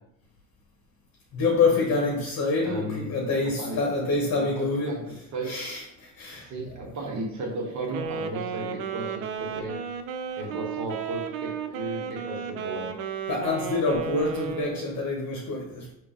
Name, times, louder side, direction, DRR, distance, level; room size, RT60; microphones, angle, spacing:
voice 1, 1.3-5.0 5.5-6.5 13.3-15.9, left 3 dB, 40° left, 1.0 m, -26 dB
voice 2, 2.6-3.8 4.4-5.5 6.4-9.8 10.4-12.9, right 2 dB, 45° right, 1.4 m, -35 dB
Wind instrument woodwind instrument, 7.8-15.0, right 6 dB, 85° right, 0.5 m, -34 dB
3.8 x 2.6 x 3.7 m
supercardioid pair, 85°, 39 cm